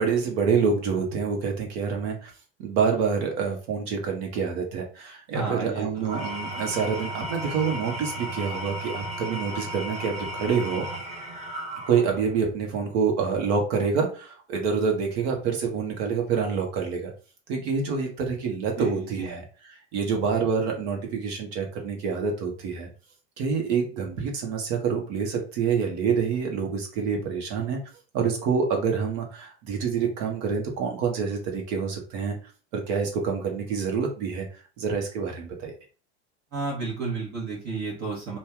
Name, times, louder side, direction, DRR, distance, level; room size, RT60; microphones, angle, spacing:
voice 1, 0.0-2.3 2.6-10.8 11.9-17.1 17.5-19.4 19.9-22.9 23.4-27.8 28.1-32.3 32.7-34.5 34.8-35.7, right 6 dB, 65° right, 2 dB, 1.4 m, -27 dB
voice 2, 5.3-6.1 18.8-19.4 36.5-38.4, right 4 dB, 50° right, -4 dB, 1.5 m, -32 dB
Engine / Tools, 6.0-12.4, right 1 dB, 20° right, 0.7 m, -35 dB
2.8 x 2.6 x 3.5 m, 0.36 s
hypercardioid pair, 95°, 37 cm